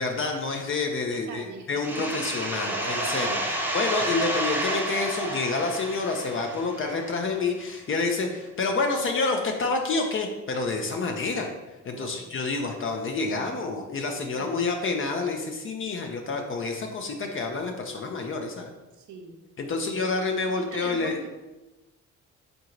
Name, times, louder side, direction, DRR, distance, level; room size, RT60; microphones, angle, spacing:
voice 1, 0.0-11.5 11.8-18.7 19.6-21.2, left 3 dB, 45° left, 2 dB, 0.6 m, -28 dB
voice 2, 1.1-2.3 3.3-3.7 11.9-12.4 14.3-14.7 18.9-19.3 19.9-20.0 20.5-21.3, right 4 dB, 75° right, 3 dB, 0.7 m, -42 dB
sound 1, 1.8-7.4, right 1 dB, 5° right, 0.6 m, -31 dB
Laughter / Crowd, 2.4-7.9 8.4-8.5 9.3-9.6, right 3 dB, 40° right, 0.8 m, -37 dB
3.7 x 2.6 x 4.4 m, 1.1 s
cardioid pair, 90°, 30 cm